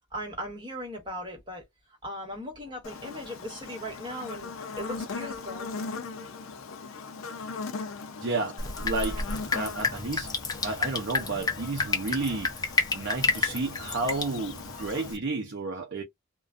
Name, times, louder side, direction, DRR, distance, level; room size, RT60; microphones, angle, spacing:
voice 1, 0.1-1.6 2.0-5.7, equal, 25° right, 1.3 m, -38 dB
Buzz, 2.8-15.1, left 4 dB, 75° left, 0.5 m, -40 dB
voice 2, 8.2-9.3 9.5-10.3 10.6-16.0, right 3 dB, 60° right, 0.6 m, -32 dB
Drip, 8.6-15.2, left 3 dB, 20° left, 0.6 m, -31 dB
2.4 x 2.2 x 2.4 m
head